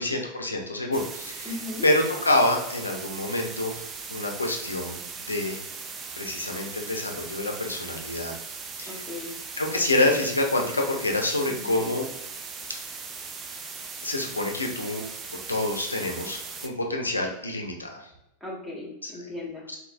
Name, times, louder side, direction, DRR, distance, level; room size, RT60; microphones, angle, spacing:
voice 1, 0.0-1.6 1.8-3.8 4.1-5.6 6.2-8.3 8.8-9.1 9.5-12.1 14.0-15.0 15.5-18.1 19.0-19.1 19.7-19.8, left 2 dB, 80° left, 2 dB, 0.6 m, -27 dB
sound 1, 0.9-16.7, right 5 dB, 20° right, 0.3 m, -39 dB
voice 2, 1.4-1.8 8.9-9.3 11.5-11.9 18.4-19.7, left 2 dB, ahead, -5 dB, 1.2 m, -37 dB
3.8 x 2.7 x 2.2 m, 0.86 s
figure-of-eight pair, 90°, 0 cm